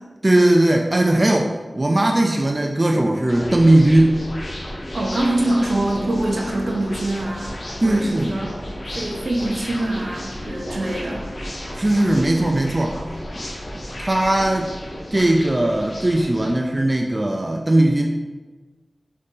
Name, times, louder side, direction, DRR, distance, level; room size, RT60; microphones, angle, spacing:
voice 1, 0.2-4.3 7.8-8.3 11.7-13.0 14.0-14.7 15.1-18.1, right 1 dB, 40° right, 1 dB, 0.3 m, -18 dB
sound 1, 3.3-16.5, equal, 70° left, 0.6 m, -33 dB
voice 2, 4.9-8.5 8.9-11.3, right 1 dB, 80° right, -1 dB, 0.7 m, -24 dB
3.7 x 2.6 x 3.7 m, 1.3 s
wide cardioid pair, 55°, 0 cm